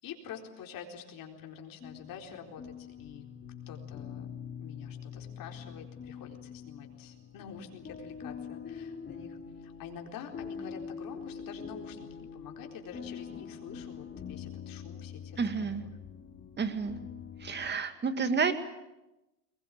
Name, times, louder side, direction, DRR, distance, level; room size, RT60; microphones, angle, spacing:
voice 1, 0.0-3.2 3.7-4.3 4.6-15.9, left 7 dB, 40° left, 3 dB, 4.2 m, -47 dB
sound 1, 1.8-17.7, left 6 dB, 20° left, 2.7 m, -44 dB
voice 2, 15.4-15.8 16.6-17.0 17.4-18.5, right 5 dB, 20° right, 10 dB, 2.1 m, -30 dB
22.5 x 21.0 x 9.2 m, 0.98 s
supercardioid pair, 130°, 50 cm